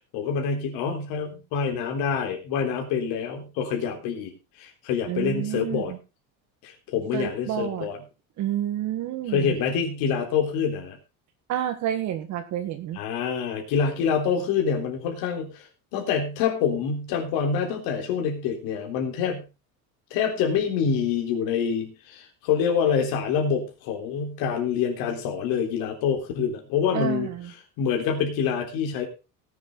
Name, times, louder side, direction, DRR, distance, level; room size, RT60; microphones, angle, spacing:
voice 1, 0.1-4.3 4.6-5.9 6.6-8.0 9.3-11.0 12.9-19.4 20.1-27.3 27.8-29.1, left 6 dB, 65° left, 2 dB, 3.7 m, -26 dB
voice 2, 5.1-6.0 7.1-7.9 8.4-9.5 11.5-13.0 26.9-27.5, right 11 dB, 50° right, 8 dB, 1.5 m, -29 dB
18.5 x 7.6 x 3.8 m, 0.29 s
cardioid pair, 165°, 38 cm